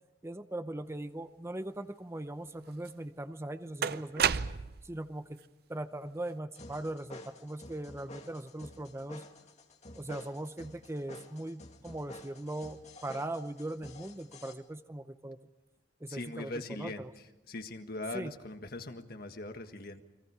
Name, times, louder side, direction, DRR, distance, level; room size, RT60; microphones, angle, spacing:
voice 1, 0.2-4.4 4.8-5.4 5.7-9.2 10.0-15.4 16.0-17.1 18.1-18.3, right 1 dB, 15° right, 10 dB, 0.7 m, -40 dB
sound 1, 2.8-2.9 3.8-4.9, right 7 dB, 60° right, 0.6 m, -30 dB
sound 2, 6.5-14.5, left 2 dB, 40° left, 2.2 m, -51 dB
voice 2, 16.1-17.0 17.5-20.0, left 2 dB, 55° left, 7 dB, 1.6 m, -41 dB
30.0 x 23.0 x 4.9 m, 1.1 s
head